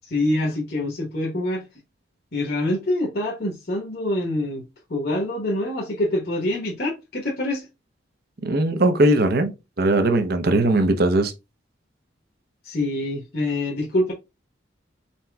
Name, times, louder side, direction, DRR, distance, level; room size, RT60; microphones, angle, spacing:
voice 1, 0.0-1.6 2.3-4.6 4.9-7.7 12.6-14.1, left 1 dB, 55° left, 1.1 m, -25 dB
voice 2, 8.4-9.5 9.8-11.3, right 1 dB, 55° right, 0.7 m, -19 dB
4.3 x 4.2 x 2.3 m
head